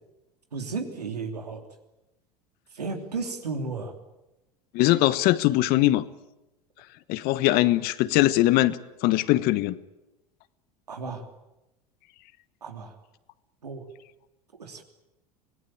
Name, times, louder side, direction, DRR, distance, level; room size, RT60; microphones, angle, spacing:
voice 1, 0.5-1.6 2.7-3.9 10.9-11.2 12.6-12.9 13.6-13.8 14.6-14.8, right 4 dB, 85° right, 5 dB, 3.1 m, -33 dB
voice 2, 4.7-6.0 7.1-9.8, left 16 dB, 50° left, 16 dB, 1.2 m, -21 dB
25.5 x 18.5 x 8.8 m, 0.97 s
hypercardioid pair, 80°, 20 cm